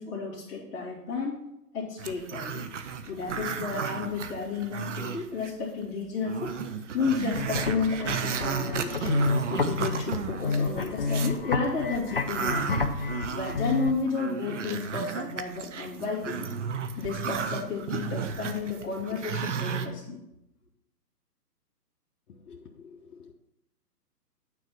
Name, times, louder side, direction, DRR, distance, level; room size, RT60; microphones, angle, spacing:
voice 1, 0.0-1.4 1.7-2.6 3.1-6.5 6.9-9.1 9.4-12.8 13.3-16.5 17.0-20.2, left 4 dB, 20° left, -5 dB, 2.3 m, -32 dB
Growling, 2.0-5.5 5.8-5.9 6.2-11.4 11.8-19.9, right 7 dB, 50° right, 0.7 m, -34 dB
sound 1, 7.2-13.9, left 4 dB, 40° left, 0.4 m, -30 dB
voice 2, 22.3-23.3, left 5 dB, 65° left, -1 dB, 1.1 m, -49 dB
9.3 x 4.5 x 5.9 m, 0.85 s
hypercardioid pair, 150°, 49 cm